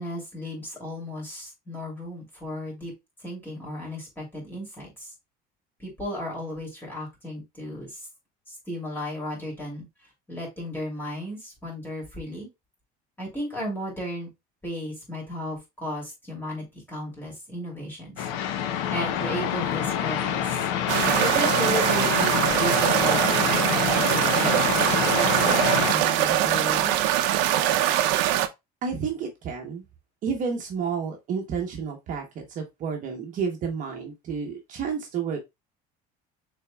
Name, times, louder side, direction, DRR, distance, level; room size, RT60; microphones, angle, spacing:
voice 1, 0.0-2.9 3.2-5.1 5.8-8.0 8.5-9.9 10.3-12.5 13.2-14.3 14.6-18.3 18.9-24.6 25.1-27.0, left 1 dB, 10° left, 2.8 m, -34 dB
sound 1, 18.2-25.9, left 9 dB, 85° left, 0.8 m, -27 dB
sound 2, 20.9-28.5, right 12 dB, 75° right, 0.6 m, -22 dB
voice 2, 28.8-29.8 30.2-35.4, right 6 dB, 45° right, 1.0 m, -30 dB
6.5 x 3.5 x 2.3 m
cardioid pair, 140°, 19 cm